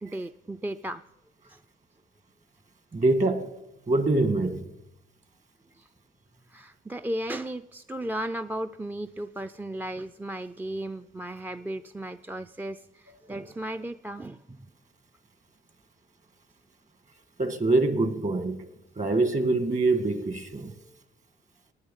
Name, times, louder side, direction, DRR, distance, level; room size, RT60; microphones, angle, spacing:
voice 1, 0.0-1.0 1.5-1.6 5.8-5.9 6.5-14.7, right 1 dB, 10° right, 0.4 m, -35 dB
voice 2, 2.9-3.5 3.9-4.7 17.4-18.7 19.0-20.7, right 2 dB, 40° right, 1.8 m, -24 dB
18.5 x 9.8 x 5.5 m
cardioid pair, 90°, 20 cm